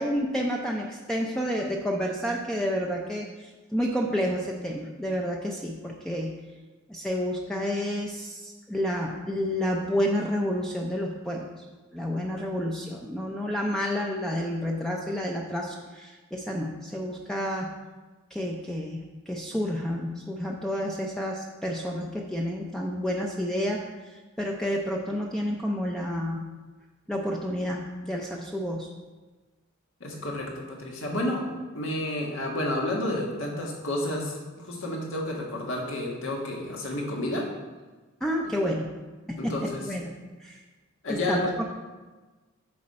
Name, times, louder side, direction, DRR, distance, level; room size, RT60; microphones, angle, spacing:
voice 1, 0.0-6.3 6.9-11.5 11.9-17.7 18.3-26.4 27.1-28.9 38.2-38.9 39.3-39.5 39.8-40.1 40.4-40.6 41.1-41.6, equal, 5° left, -1 dB, 0.5 m, -30 dB
voice 2, 30.0-31.4 31.7-37.4 39.4-39.8 41.0-41.5, left 1 dB, 75° left, -1 dB, 1.7 m, -30 dB
8.6 x 5.1 x 4.3 m, 1.3 s
head